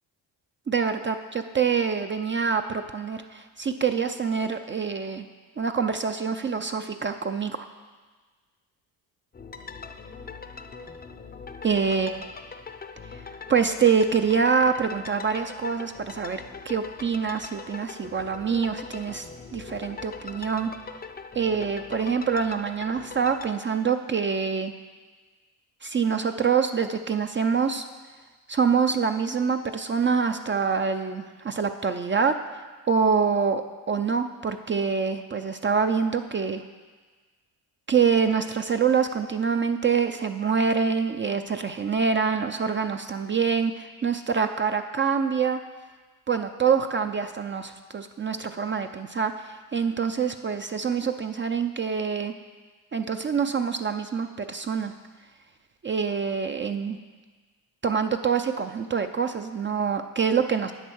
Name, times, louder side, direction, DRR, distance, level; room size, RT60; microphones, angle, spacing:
voice 1, 0.7-5.2 5.6-7.7 11.6-12.2 13.1-13.2 13.5-20.7 21.3-24.7 25.8-27.8 28.5-32.3 32.9-36.6 37.9-45.6 46.3-52.3 52.9-54.9 55.8-57.0 57.8-60.7, right 6 dB, 30° right, 7 dB, 0.5 m, -25 dB
sound 1, 9.3-23.5, left 5 dB, 20° left, 0.6 m, -42 dB
8.2 x 8.0 x 6.3 m, 1.4 s
cardioid pair, 80°, 43 cm